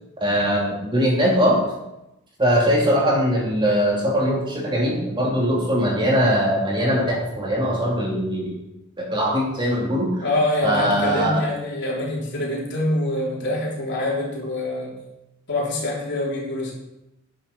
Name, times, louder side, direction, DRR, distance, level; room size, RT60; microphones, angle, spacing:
voice 1, 0.2-1.6 2.4-8.6 9.0-10.1 10.6-11.4, equal, 25° right, -4 dB, 3.0 m, -21 dB
voice 2, 10.2-15.0 15.5-16.7, left 1 dB, 60° left, -4 dB, 3.5 m, -25 dB
10.0 x 7.1 x 6.0 m, 0.91 s
head